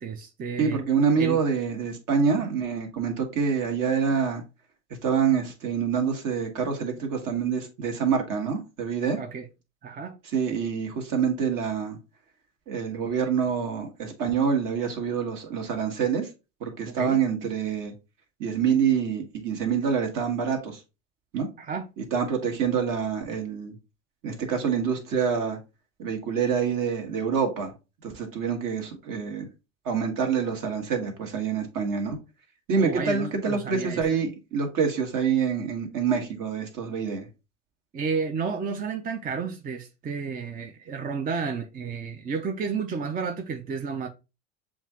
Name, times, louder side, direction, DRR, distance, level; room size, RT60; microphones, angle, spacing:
voice 1, 0.0-0.8 1.2-1.4 2.3-2.5 9.2-9.5 9.8-10.1 16.9-17.2 21.6-21.9 32.8-34.3 37.9-44.1, right 5 dB, 20° right, 0.6 m, -32 dB
voice 2, 0.6-4.4 5.0-9.2 10.3-12.0 12.7-16.3 16.6-17.9 18.4-20.8 21.3-21.5 22.1-23.7 24.2-25.6 26.0-27.7 28.0-29.5 29.8-32.2 32.7-37.3, right 6 dB, 50° right, 1.7 m, -26 dB
7.1 x 2.5 x 2.9 m
hypercardioid pair, 90°, 40 cm